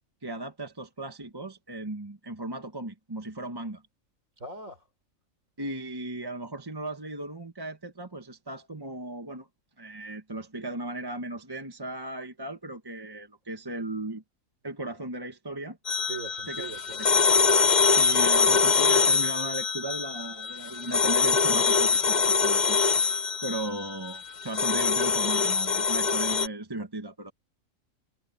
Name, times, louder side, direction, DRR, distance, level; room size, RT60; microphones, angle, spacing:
voice 1, 0.2-3.8 5.6-9.5 9.8-14.2 14.6-15.8 16.5-16.7 17.0-17.3 18.0-22.8 23.4-27.3, right 2 dB, 20° right, 1.1 m, -36 dB
voice 2, 4.4-4.8 16.1-17.0 17.9-18.3, right 4 dB, 75° right, 4.9 m, -40 dB
sound 1, 15.9-26.5, left 5 dB, 40° left, 0.8 m, -24 dB
omnidirectional pair, 1.4 m